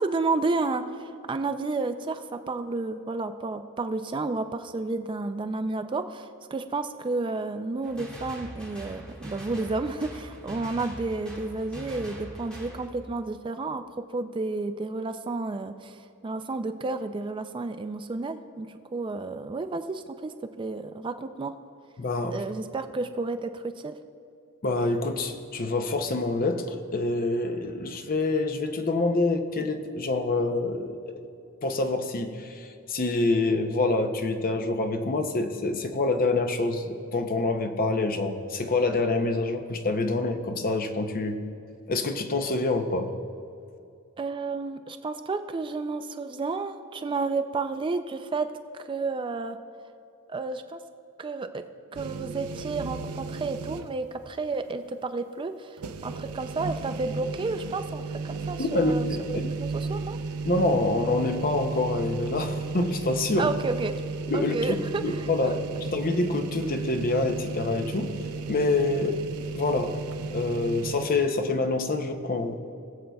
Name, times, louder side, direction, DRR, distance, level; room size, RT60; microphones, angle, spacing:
voice 1, 0.0-21.5 22.3-24.0 44.2-48.5 48.8-49.6 50.3-50.8 51.2-51.6 51.9-60.2 63.4-64.0 64.3-65.3, right 3 dB, 20° right, 9 dB, 0.3 m, -31 dB
sound 1, 7.8-12.9, equal, 5° left, 2.0 m, -42 dB
voice 2, 22.0-22.4 24.6-31.2 31.6-41.4 41.9-43.1 58.6-59.5 60.4-63.5 64.3-64.8 65.0-68.1 68.5-69.1 69.5-69.9 70.3-72.6, left 2 dB, 40° left, 6 dB, 0.7 m, -26 dB
sound 2, 51.9-54.1 54.5-54.6 55.8-71.1, right 4 dB, 80° right, 0.5 m, -34 dB
20.5 x 7.6 x 2.3 m, 2.6 s
head